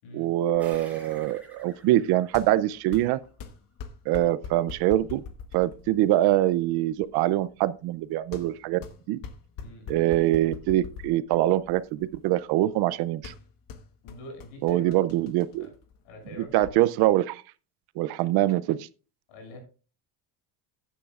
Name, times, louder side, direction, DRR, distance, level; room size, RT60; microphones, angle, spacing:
voice 1, 0.1-3.2 4.1-5.2 5.5-8.8 9.1-9.2 9.9-13.3 14.6-15.7 16.4-17.4 18.0-18.9, right 14 dB, 50° right, 0.5 m, -24 dB
sound 1, 0.5-16.7, left 6 dB, 40° left, 1.2 m, -45 dB
sound 2, 0.6-3.6, right 2 dB, 5° right, 4.9 m, -52 dB
voice 2, 14.0-15.0 15.6-15.7 16.0-16.8 19.3-19.6, left 1 dB, 85° left, 6.6 m, -45 dB
14.5 x 10.0 x 2.4 m
cardioid pair, 180°, 49 cm